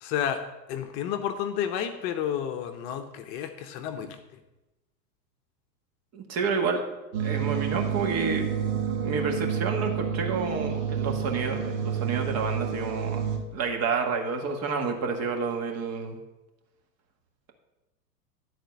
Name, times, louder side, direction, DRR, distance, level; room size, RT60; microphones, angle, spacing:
voice 1, 0.0-4.2, left 9 dB, 40° left, 7 dB, 1.0 m, -31 dB
voice 2, 6.1-6.8 7.2-8.5 9.0-16.2, right 4 dB, 30° right, 3 dB, 1.6 m, -29 dB
sound 1, 7.1-13.4, right 8 dB, 55° right, 2.0 m, -29 dB
11.5 x 4.4 x 7.1 m, 1.0 s
hypercardioid pair, 115°, 49 cm